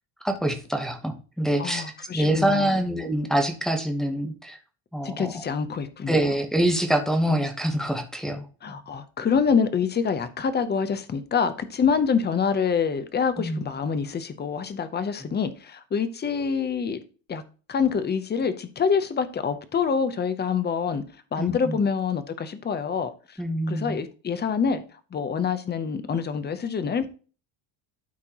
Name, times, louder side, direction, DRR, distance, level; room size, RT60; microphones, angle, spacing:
voice 1, 0.2-4.6 4.9-5.3 6.1-8.8 13.4-13.7 21.4-21.8 23.4-24.0, right 1 dB, ahead, 2 dB, 1.0 m, -25 dB
voice 2, 1.6-2.9 5.0-6.2 8.6-17.0 17.3-17.4 17.7-21.0 21.3-23.4 23.7-24.8 25.1-27.1, left 6 dB, 20° left, 11 dB, 0.7 m, -26 dB
12.5 x 4.4 x 2.9 m, 0.37 s
cardioid pair, 145°, 49 cm